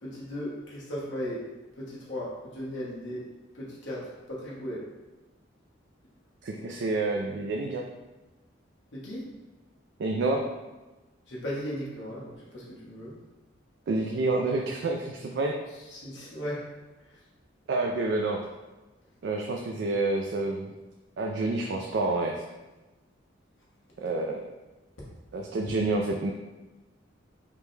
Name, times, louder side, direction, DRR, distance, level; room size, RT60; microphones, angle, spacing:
voice 1, 0.0-1.5 1.8-3.3 3.5-4.9 8.9-9.3 11.3-13.1 15.9-16.7, equal, 70° left, -6 dB, 1.1 m, -36 dB
voice 2, 6.4-7.8 10.0-10.4 13.9-15.5 17.7-18.4 19.2-20.7 21.2-22.3 24.0-24.4 25.3-26.3, right 2 dB, 60° right, 1 dB, 0.3 m, -28 dB
5.1 x 2.2 x 3.1 m, 1.1 s
head